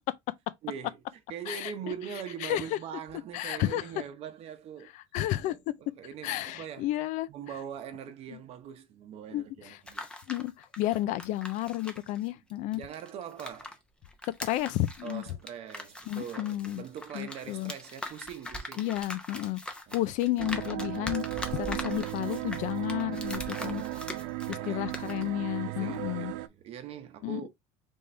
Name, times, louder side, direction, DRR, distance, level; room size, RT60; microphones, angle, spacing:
voice 1, 0.6-1.0 1.3-4.9 5.4-6.9 7.3-10.1 12.7-13.8 15.0-18.9 19.9-20.0 23.6-25.2 25.7-27.5, right 8 dB, 45° right, 0.8 m, -42 dB
voice 2, 2.4-2.8 3.3-3.8 5.1-5.6 6.2-7.3 9.3-9.8 10.3-12.8 14.4-15.2 16.1-16.8 17.1-17.7 18.8-19.6 19.9-21.2 21.5-23.8 24.5-26.3 27.2-27.5, left 15 dB, 60° left, 0.5 m, -31 dB
sound 1, 9.7-13.7 14.0-24.7 24.9-25.2, left 1 dB, 5° left, 0.7 m, -41 dB
sound 2, 20.4-26.5, right 17 dB, 70° right, 0.4 m, -36 dB
4.1 x 3.5 x 3.2 m
cardioid pair, 160°, 14 cm